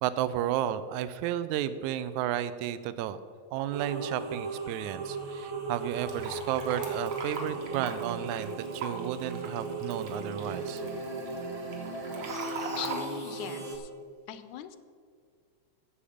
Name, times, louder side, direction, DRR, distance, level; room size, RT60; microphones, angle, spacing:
voice 1, 0.0-3.2 3.5-10.8, right 11 dB, 80° right, 14 dB, 1.9 m, -32 dB
sound 1, 3.7-13.8, right 3 dB, 50° right, 1.6 m, -37 dB
Fill (with liquid), 6.1-13.0, right 4 dB, 65° right, 2.8 m, -41 dB
voice 2, 12.8-13.9 14.3-14.8, left 11 dB, 80° left, 12 dB, 1.9 m, -40 dB
15.0 x 7.2 x 5.0 m, 2.1 s
omnidirectional pair, 3.4 m